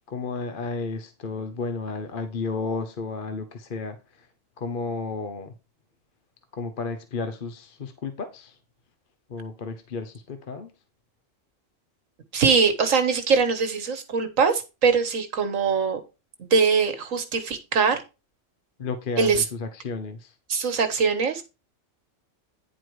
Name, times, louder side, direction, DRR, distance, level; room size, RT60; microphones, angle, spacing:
voice 1, 0.1-4.3 4.6-5.5 6.5-8.6 9.3-10.7 18.8-20.4, left 4 dB, 45° left, 0.9 m, -32 dB
voice 2, 12.3-16.0 16.4-18.0 19.2-19.4 20.5-21.4, right 5 dB, 90° right, 1.6 m, -22 dB
10.0 x 4.5 x 4.7 m
omnidirectional pair, 1.3 m